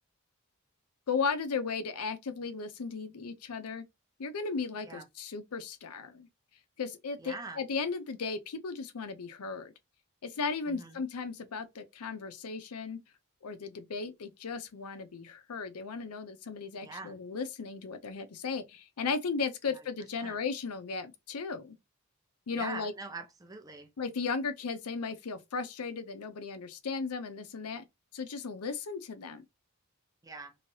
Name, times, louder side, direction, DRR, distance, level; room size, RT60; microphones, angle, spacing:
voice 1, 1.1-3.8 4.2-6.3 6.8-9.7 10.2-13.0 13.4-21.8 22.5-22.9 24.0-27.8 28.1-29.5, left 5 dB, 85° left, 0.6 m, -36 dB
voice 2, 7.2-7.6 10.7-11.0 16.8-17.2 19.7-19.9 20.2-20.4 22.5-23.9 30.2-30.5, right 3 dB, 15° right, 0.5 m, -43 dB
3.1 x 2.7 x 2.7 m
head